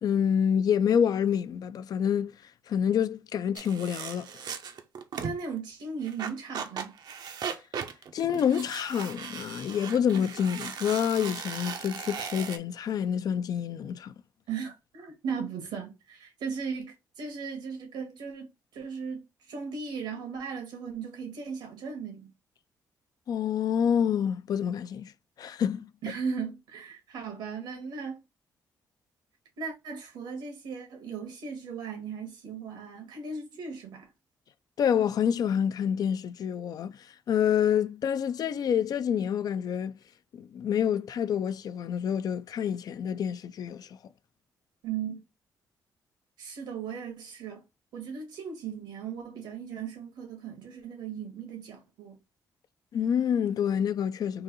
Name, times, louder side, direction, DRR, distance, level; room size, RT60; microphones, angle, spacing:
voice 1, 0.0-4.3 8.1-14.1 23.3-25.1 25.4-25.9 34.8-40.0 40.3-44.0 52.9-54.4, left 8 dB, 60° left, 0.4 m, -27 dB
sound 1, 3.6-5.5 6.0-12.6, right 6 dB, 65° right, 0.7 m, -38 dB
voice 2, 5.2-6.9 14.5-22.3 26.0-28.2 29.6-34.1 44.8-45.2 46.4-47.6 47.9-52.2, right 6 dB, 90° right, 1.8 m, -37 dB
3.9 x 2.6 x 4.1 m
cardioid pair, 85°, 7 cm